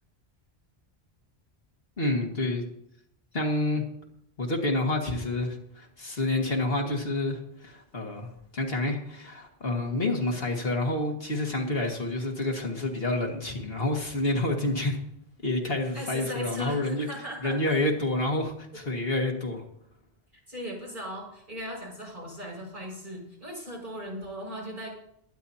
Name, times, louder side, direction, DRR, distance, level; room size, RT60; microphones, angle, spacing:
voice 1, 2.0-2.6 3.3-3.8 4.4-15.0 15.4-17.1 17.4-19.6, left 2 dB, 65° left, 1 dB, 2.2 m, -28 dB
voice 2, 15.9-17.8 20.3-24.9, equal, 50° right, -3 dB, 6.1 m, -38 dB
22.0 x 10.5 x 2.8 m, 0.75 s
omnidirectional pair, 1.1 m